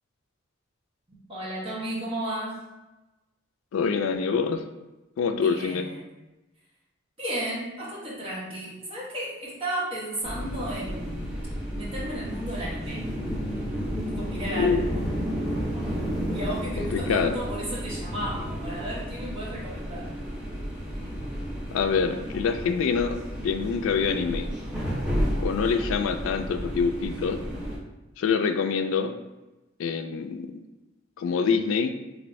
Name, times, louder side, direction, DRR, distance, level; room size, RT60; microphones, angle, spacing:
voice 1, 1.3-2.6 5.3-6.0 7.2-11.2 11.7-13.0 14.2-15.0 16.3-20.1, right 1 dB, 30° right, -7 dB, 1.0 m, -34 dB
voice 2, 3.7-4.6 5.2-5.9 14.6-14.8 16.8-17.4 21.7-23.2 23.4-24.5 25.4-27.4 28.2-29.1 29.8-30.5 31.2-31.9, left 5 dB, 90° left, 8 dB, 0.3 m, -25 dB
sound 1, 10.2-27.8, equal, 5° right, 0.6 m, -32 dB
3.2 x 2.6 x 3.1 m, 1.0 s
head